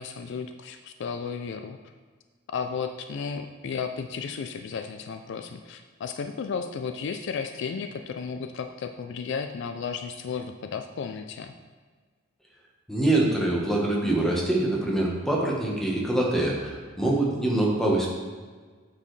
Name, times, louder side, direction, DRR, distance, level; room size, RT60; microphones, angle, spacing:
voice 1, 0.0-1.8 2.5-11.5, left 6 dB, 60° left, 7 dB, 0.3 m, -34 dB
voice 2, 12.9-18.1, right 1 dB, ahead, -3 dB, 1.1 m, -24 dB
8.5 x 4.5 x 3.2 m, 1.5 s
head